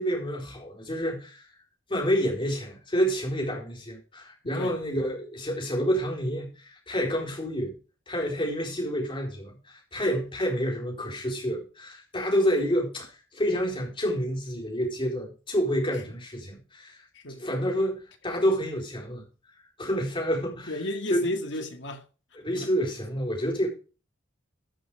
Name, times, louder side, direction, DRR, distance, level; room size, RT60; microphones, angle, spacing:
voice 1, 0.0-1.5 1.9-7.7 8.1-17.0 17.4-19.2 19.8-20.7 21.1-21.3 22.4-23.7, equal, 25° left, 4.3 m, -28 dB
voice 2, 20.7-22.0 22.6-22.7, left 1 dB, 70° left, 2.0 m, -33 dB
13.5 x 6.1 x 4.9 m
head